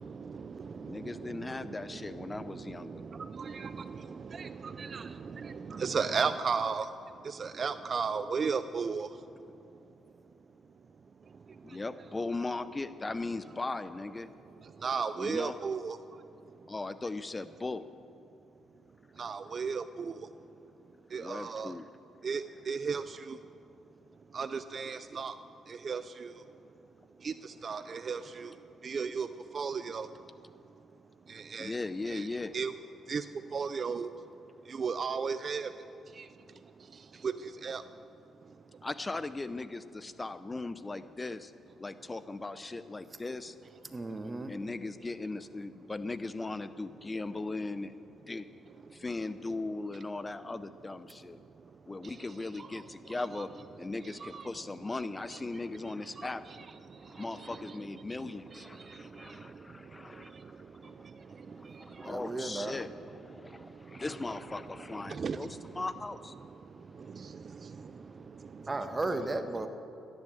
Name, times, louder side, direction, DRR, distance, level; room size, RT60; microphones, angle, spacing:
voice 1, 0.8-3.0 11.6-14.3 15.2-15.6 16.7-17.9 21.2-21.9 31.6-32.5 38.8-41.5 41.8-43.6 44.5-47.9 48.3-48.5 48.9-51.4 51.9-53.5 53.8-56.4 57.0-61.1 61.4-66.3, left 3 dB, 20° left, 13 dB, 0.5 m, -38 dB
voice 2, 3.3-3.7 4.3-5.1 5.4-6.9 7.4-9.1 14.8-16.0 19.2-20.1 21.1-21.7 22.2-22.4 22.7-23.0 24.3-25.3 25.8-26.0 27.2-27.3 27.6-28.5 28.8-29.3 29.5-30.1 31.5-31.7 32.1-32.3 32.5-32.7 33.1-33.2 33.5-34.1 34.8-35.7 37.2-37.3 37.6-37.8 54.2-54.4 65.1-65.4, right 5 dB, 45° right, 12 dB, 0.5 m, -33 dB
voice 3, 43.9-44.5 62.0-62.7 68.7-69.7, right 2 dB, 20° right, 7 dB, 1.3 m, -34 dB
16.0 x 10.5 x 7.8 m, 2.7 s
cardioid pair, 90°, 0 cm